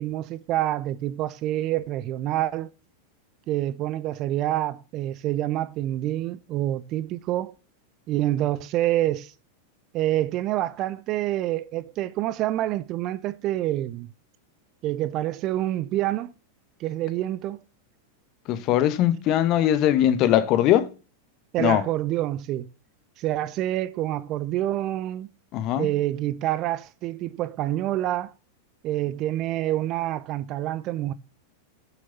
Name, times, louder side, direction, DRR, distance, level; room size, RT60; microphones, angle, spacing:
voice 1, 0.0-2.7 3.5-7.5 8.1-9.3 9.9-14.1 14.8-16.3 16.8-17.6 21.5-22.7 23.2-25.3 25.8-28.3 28.8-31.1, right 14 dB, 35° right, 0.6 m, -27 dB
voice 2, 18.5-20.9 21.6-21.8 25.5-25.9, left 11 dB, 40° left, 0.9 m, -21 dB
7.4 x 6.4 x 6.9 m
figure-of-eight pair, 90°, 0 cm